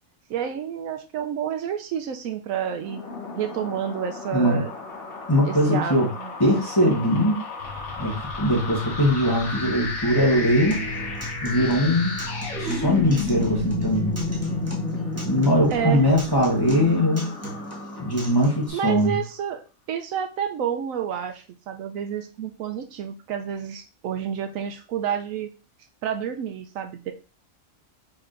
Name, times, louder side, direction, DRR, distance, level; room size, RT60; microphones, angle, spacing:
voice 1, 0.3-3.0 3.4-4.7 5.4-6.3 15.7-16.1 18.7-25.5 26.0-27.1, right 8 dB, 75° right, 6 dB, 1.0 m, -29 dB
sound 1, 2.7-19.0, left 3 dB, 75° left, 1.8 m, -33 dB
voice 2, 4.3-4.6 5.3-6.1 6.4-7.4 8.0-10.8 11.4-12.1 12.6-14.1 15.2-17.4 18.0-19.2, equal, 20° left, -2 dB, 1.1 m, -21 dB
sound 2, 7.6-17.0, equal, 50° left, 1.2 m, -36 dB
Acoustic guitar, 10.7-18.7, right 1 dB, 10° right, 1.1 m, -38 dB
4.6 x 4.3 x 2.5 m, 0.34 s
omnidirectional pair, 1.5 m